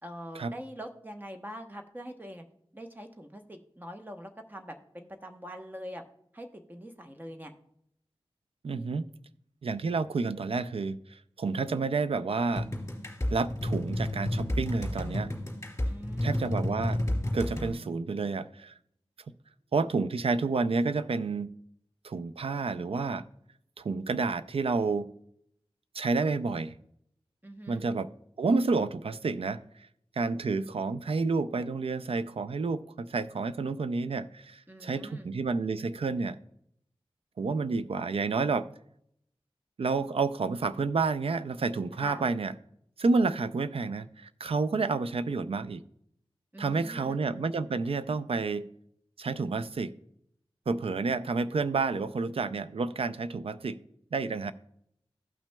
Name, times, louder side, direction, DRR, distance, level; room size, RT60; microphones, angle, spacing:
voice 1, 0.0-2.4 2.7-6.0 6.3-7.5 15.8-16.6 27.4-27.8 34.7-35.3 42.0-42.3 46.5-47.2, equal, 20° right, 4 dB, 0.9 m, -43 dB
voice 2, 8.6-9.0 9.6-12.7 13.3-15.3 16.2-17.0 17.3-18.7 19.7-21.5 22.0-23.2 23.8-25.1 25.9-26.7 27.7-28.1 28.4-29.9 30.2-36.4 37.4-38.7 39.8-42.5 43.0-45.8 46.6-48.7 49.2-49.9 50.7-53.8 54.1-54.5, right 4 dB, 70° right, 13 dB, 0.4 m, -30 dB
sound 1, 12.6-17.7, left 1 dB, 25° left, 2.7 m, -31 dB
15.5 x 5.9 x 2.2 m, 0.73 s
wide cardioid pair, 80°, 10 cm